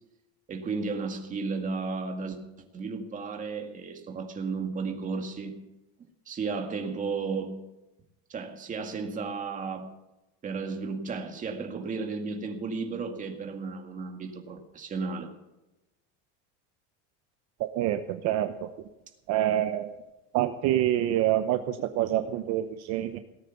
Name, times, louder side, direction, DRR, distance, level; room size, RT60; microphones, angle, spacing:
voice 1, 0.5-2.4 2.7-5.5 6.3-7.6 8.3-9.9 10.4-15.3, right 4 dB, 20° right, 4 dB, 2.1 m, -33 dB
voice 2, 17.6-18.5 19.3-19.9 20.3-23.2, right 12 dB, 50° right, 8 dB, 0.9 m, -26 dB
18.0 x 9.2 x 7.1 m, 0.98 s
cardioid pair, 160°, 34 cm